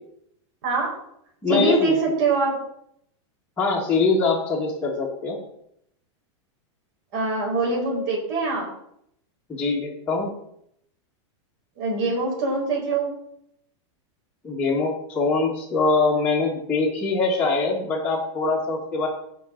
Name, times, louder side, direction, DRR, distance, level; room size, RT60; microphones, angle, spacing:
voice 1, 0.6-0.9 1.5-2.6 7.1-8.7 11.8-13.1, right 3 dB, 40° right, -2 dB, 4.6 m, -23 dB
voice 2, 1.4-1.9 3.6-5.4 9.5-10.3 14.4-19.1, left 3 dB, 10° left, -6 dB, 1.5 m, -23 dB
16.0 x 5.4 x 3.8 m, 0.74 s
supercardioid pair, 165°, 16 cm